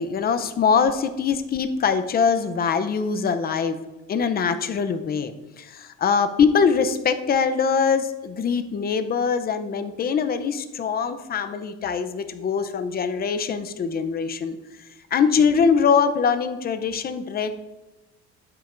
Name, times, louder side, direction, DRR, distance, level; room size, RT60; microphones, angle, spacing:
voice 1, 0.0-3.8 4.1-14.6 15.1-17.5, left 6 dB, 30° left, 9 dB, 0.6 m, -23 dB
11.5 x 8.6 x 2.6 m, 1.1 s
cardioid pair, 135°, 31 cm